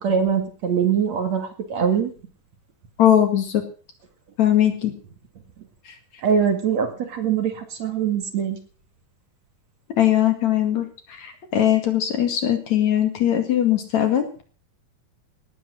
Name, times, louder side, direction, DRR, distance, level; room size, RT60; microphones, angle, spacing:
voice 1, 0.0-2.1 6.2-8.6, right 7 dB, 55° right, 6 dB, 3.2 m, -23 dB
voice 2, 3.0-3.6 4.4-4.9 5.9-6.0 10.0-14.3, left 11 dB, 55° left, 6 dB, 3.3 m, -20 dB
18.5 x 9.0 x 6.5 m, 0.40 s
omnidirectional pair, 3.9 m